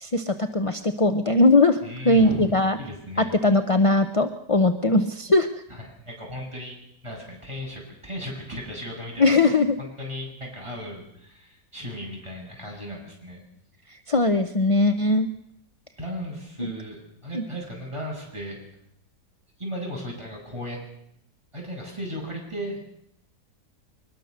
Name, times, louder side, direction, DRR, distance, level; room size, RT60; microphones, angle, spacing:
voice 1, 0.0-1.8 2.0-2.8 3.2-5.5 9.2-9.8 13.9-15.3 16.6-16.7 17.3-17.4, left 2 dB, 30° left, 8 dB, 0.6 m, -20 dB
voice 2, 1.8-3.3 5.7-6.8 7.0-9.4 9.8-13.4 16.0-18.6 19.6-20.8 21.5-22.8, equal, 15° right, -1 dB, 7.5 m, -36 dB
22.5 x 21.0 x 6.7 m, 0.76 s
omnidirectional pair, 1.8 m